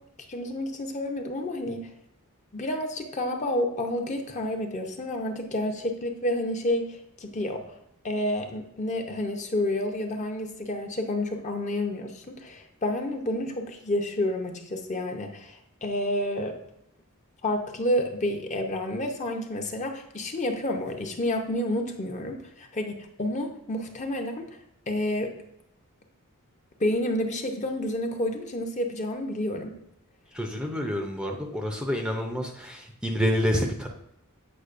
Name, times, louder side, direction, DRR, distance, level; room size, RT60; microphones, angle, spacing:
voice 1, 0.3-1.9 2.5-7.6 8.0-16.6 17.4-24.5 24.9-25.3 26.8-29.8, left 1 dB, 30° left, 3 dB, 0.7 m, -29 dB
voice 2, 30.3-33.9, equal, 5° right, 2 dB, 0.5 m, -28 dB
8.0 x 5.2 x 2.5 m, 0.80 s
head